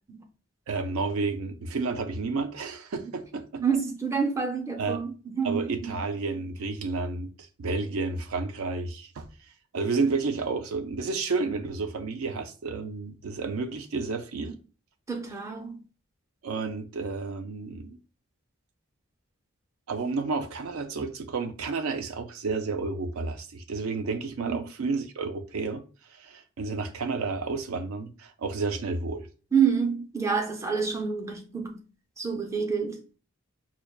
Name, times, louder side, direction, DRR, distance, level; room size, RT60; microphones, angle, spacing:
voice 1, 0.7-3.6 4.8-5.0 5.4-14.6 16.4-18.0 19.9-29.3, right 4 dB, 70° right, 0.5 m, -31 dB
voice 2, 3.6-5.6 15.1-15.8 24.4-24.6 29.5-31.8 32.2-33.0, right 6 dB, 15° right, 0.5 m, -27 dB
5.9 x 2.2 x 2.3 m
head